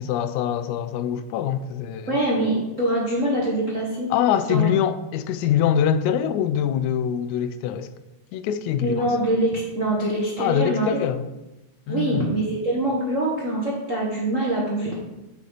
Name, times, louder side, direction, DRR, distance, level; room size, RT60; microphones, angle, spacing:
voice 1, 0.0-2.1 4.1-7.9 8.3-9.1 10.4-11.2 11.9-12.3, left 9 dB, 85° left, 1.9 m, -24 dB
voice 2, 2.1-4.1 4.5-4.7 8.8-11.0 11.9-15.0, right 1 dB, 50° right, 0.9 m, -24 dB
8.4 x 6.7 x 4.0 m
omnidirectional pair, 3.4 m